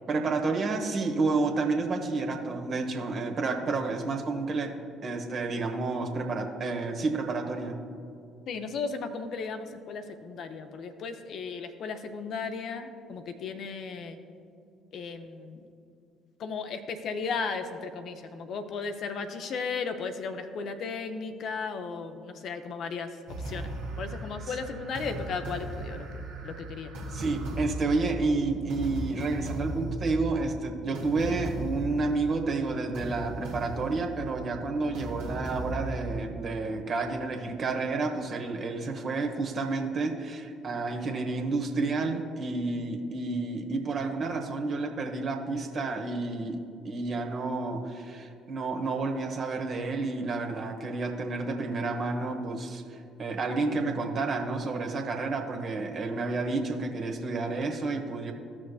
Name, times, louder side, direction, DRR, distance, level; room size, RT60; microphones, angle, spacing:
voice 1, 0.1-4.7 5.0-7.8 24.5-24.6 27.1-58.3, right 3 dB, 45° right, 3 dB, 1.1 m, -30 dB
voice 2, 8.5-14.2 14.9-15.6 16.4-23.1 23.5-23.7 24.0-26.1 26.4-26.9, left 5 dB, 50° left, 7 dB, 0.6 m, -35 dB
sound 1, 23.3-36.2, right 1 dB, 70° right, 1.6 m, -37 dB
15.0 x 6.2 x 2.4 m, 2.5 s
figure-of-eight pair, 50°, 0 cm